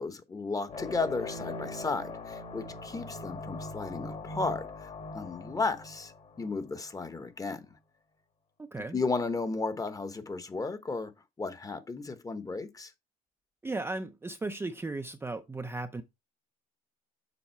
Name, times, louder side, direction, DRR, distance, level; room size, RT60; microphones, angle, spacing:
voice 1, 0.0-6.1 6.4-7.7 8.9-11.1 11.4-12.9, left 3 dB, 20° left, 1.0 m, -34 dB
sound 1, 0.7-6.8, left 2 dB, 40° left, 1.6 m, -41 dB
voice 2, 8.7-9.0 13.6-16.0, right 2 dB, 15° right, 0.5 m, -36 dB
7.2 x 4.2 x 4.4 m
cardioid pair, 110°, 17 cm